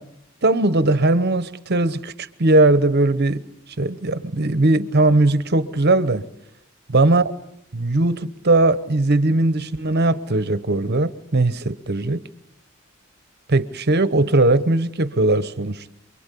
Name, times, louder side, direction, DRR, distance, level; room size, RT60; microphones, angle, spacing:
voice 1, 0.4-3.4 3.8-6.2 6.9-7.2 7.7-12.2 13.5-15.9, right 2 dB, 50° right, 14 dB, 1.0 m, -19 dB
28.5 x 23.0 x 8.4 m, 0.76 s
head